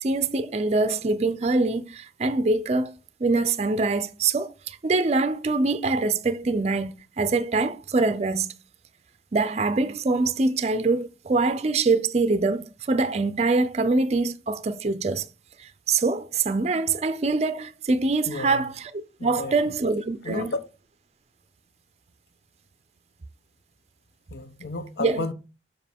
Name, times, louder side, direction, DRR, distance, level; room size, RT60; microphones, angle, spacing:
voice 1, 0.0-2.9 3.2-8.5 9.3-15.3 15.6-18.9 19.2-20.5 25.0-25.3, right 3 dB, 35° right, 0.4 m, -24 dB
voice 2, 18.3-18.7 19.2-19.6 20.2-20.6 24.3-25.3, left 3 dB, 70° left, 0.8 m, -32 dB
7.4 x 4.9 x 3.5 m
head